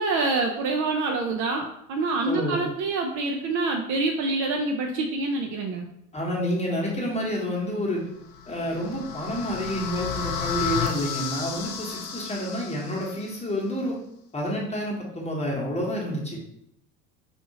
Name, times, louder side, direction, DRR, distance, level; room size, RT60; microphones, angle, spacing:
voice 1, 0.0-5.9, right 3 dB, 45° right, 3 dB, 0.5 m, -26 dB
voice 2, 2.2-2.6 6.1-8.1 8.5-13.9 14.3-16.4, equal, 15° left, -2 dB, 1.1 m, -29 dB
sound 1, 8.3-13.3, left 7 dB, 45° left, 0.8 m, -32 dB
4.3 x 2.6 x 2.7 m, 0.76 s
hypercardioid pair, 80°, 46 cm